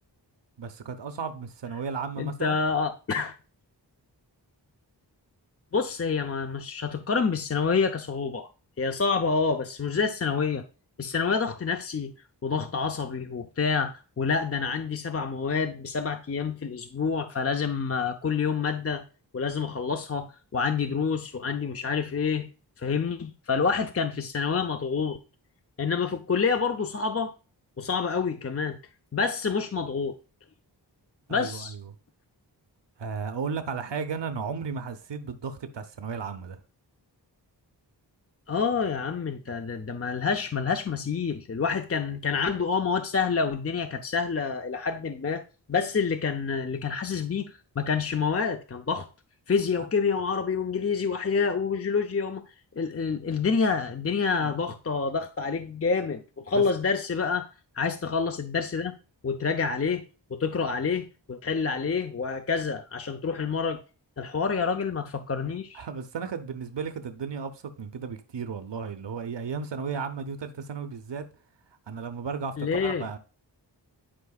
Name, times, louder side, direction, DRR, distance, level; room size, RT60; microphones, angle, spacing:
voice 1, 0.6-2.6 31.3-32.0 33.0-36.6 54.4-54.5 56.5-56.6 65.7-71.2 71.9-73.2, right 5 dB, 75° right, 0.9 m, -34 dB
voice 2, 2.2-3.3 5.7-8.5 8.8-10.6 11.0-12.1 12.4-19.0 19.3-22.5 22.8-25.2 25.8-27.3 27.8-28.8 29.1-30.2 31.3-31.7 38.5-45.4 45.7-49.1 49.5-52.4 52.8-56.2 56.5-57.5 57.8-58.9 59.2-60.0 60.3-63.8 64.2-65.9 72.6-73.0, left 5 dB, 35° left, 0.6 m, -27 dB
11.5 x 4.7 x 2.4 m
wide cardioid pair, 60°, 43 cm